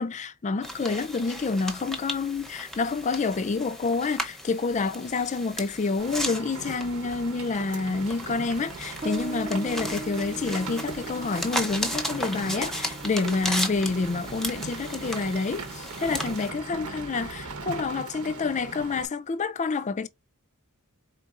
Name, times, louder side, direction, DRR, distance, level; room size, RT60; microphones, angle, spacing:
voice 1, 0.0-20.1, left 4 dB, 30° left, 0.4 m, -28 dB
sound 1, 0.6-16.5, equal, ahead, 0.7 m, -36 dB
Rain, 6.0-19.1, right 4 dB, 75° right, 1.1 m, -39 dB
Bass guitar, 9.0-16.2, right 1 dB, 30° right, 0.4 m, -41 dB
4.4 x 4.0 x 2.4 m
head